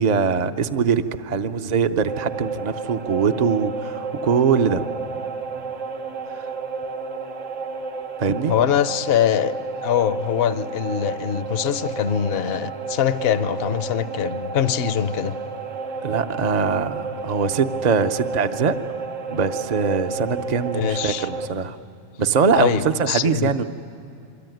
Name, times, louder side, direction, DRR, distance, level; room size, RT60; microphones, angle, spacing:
voice 1, 0.0-4.9 6.3-6.5 8.2-8.5 16.0-18.8 19.3-21.8 22.2-23.6, right 6 dB, 40° right, 9 dB, 0.8 m, -22 dB
sound 1, 2.1-21.5, right 4 dB, 80° right, 1.8 m, -31 dB
voice 2, 8.5-9.5 9.8-15.4 20.7-21.3 22.6-23.5, left 9 dB, 55° left, 13 dB, 0.9 m, -23 dB
27.0 x 23.5 x 9.2 m, 2.7 s
omnidirectional pair, 1.3 m